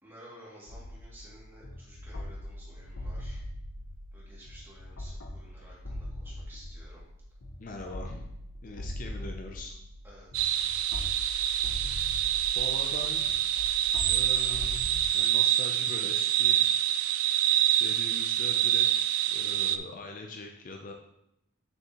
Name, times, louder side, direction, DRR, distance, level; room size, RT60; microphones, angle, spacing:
voice 1, 0.0-3.4 4.1-7.1 10.0-10.5, equal, 10° right, -7 dB, 2.4 m, -53 dB
sound 1, 0.7-15.1, left 1 dB, 65° left, 0.9 m, -41 dB
voice 2, 7.6-8.3 8.6-9.8 12.6-13.6 14.0-14.9 15.1-16.7 17.8-20.9, left 2 dB, 40° left, 2 dB, 0.5 m, -42 dB
sound 2, 10.3-19.8, right 11 dB, 90° right, 0.4 m, -26 dB
7.2 x 6.4 x 3.0 m, 0.82 s
head